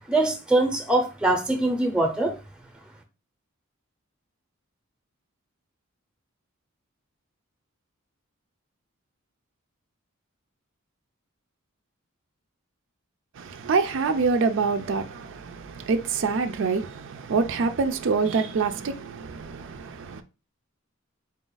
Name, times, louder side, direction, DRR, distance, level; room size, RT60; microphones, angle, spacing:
voice 1, 0.1-2.3, right 2 dB, 5° right, 0.7 m, -23 dB
voice 2, 13.4-20.2, right 4 dB, 60° right, 0.4 m, -26 dB
4.2 x 2.4 x 3.8 m
head